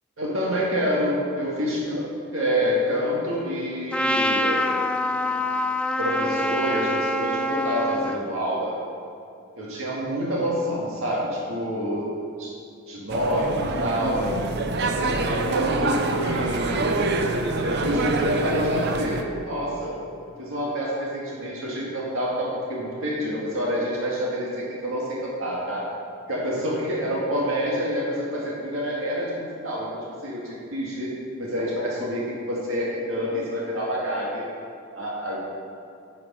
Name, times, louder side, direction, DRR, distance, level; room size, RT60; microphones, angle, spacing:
voice 1, 0.2-4.6 5.0-5.6 6.0-8.7 9.6-12.1 12.4-12.5 12.9-14.3 15.0-17.1 17.6-20.0 20.4-25.9 26.3-31.1 31.4-34.4 34.9-35.4, equal, 75° right, -5 dB, 1.9 m, -27 dB
Trumpet, 3.9-8.2, left 1 dB, 5° left, 0.4 m, -25 dB
sound 1, 13.1-19.2, right 2 dB, 55° right, 0.7 m, -26 dB
9.7 x 6.5 x 6.1 m, 2.5 s
head